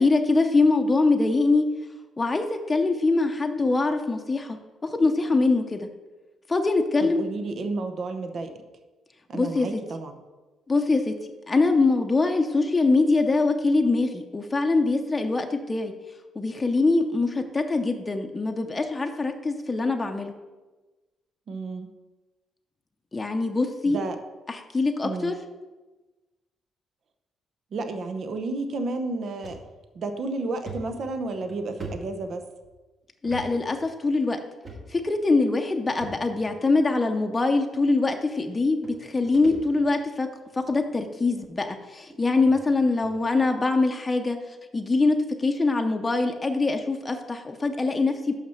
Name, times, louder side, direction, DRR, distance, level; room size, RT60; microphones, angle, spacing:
voice 1, 0.0-1.6 2.2-4.6 4.8-5.9 6.5-7.2 9.3-9.8 10.7-11.1 11.5-15.9 16.4-20.3 23.1-24.0 24.5-25.4 33.2-34.4 34.9-40.3 40.7-44.4 44.7-48.3, left 3 dB, 25° left, 4 dB, 0.7 m, -23 dB
voice 2, 7.0-8.5 9.3-10.1 21.5-21.9 23.9-24.2 25.0-25.4 27.7-29.6 29.9-32.4, right 3 dB, 55° right, 7 dB, 0.7 m, -31 dB
sound 1, 29.4-29.6 30.1-30.2 30.7-32.7 33.2-33.5 33.7-33.9 34.6-35.1 36.0-36.5 37.4-37.5 38.5-38.6 38.8-40.0 40.4-40.7 41.5-41.6 42.1-42.2 42.5-42.6 43.0-43.2, right 2 dB, 40° right, 2.0 m, -41 dB
5.8 x 5.8 x 5.7 m, 1.2 s
cardioid pair, 90°, 0 cm